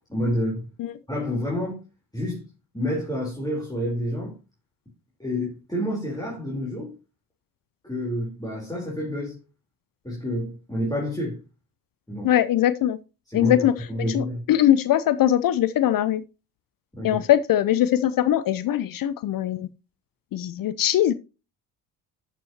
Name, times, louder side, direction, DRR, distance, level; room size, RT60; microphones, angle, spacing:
voice 1, 0.1-0.7 1.1-1.8 2.1-2.4 2.7-4.3 5.2-6.9 7.8-9.4 10.0-11.4 12.1-12.3 13.3-14.5 16.9-17.2, left 1 dB, 10° left, 3.7 m, -28 dB
voice 2, 12.2-13.0 13.3-13.7 14.1-16.2 17.0-19.7 20.3-21.1, left 12 dB, 45° left, 0.7 m, -21 dB
13.0 x 6.1 x 2.9 m
figure-of-eight pair, 50°, 48 cm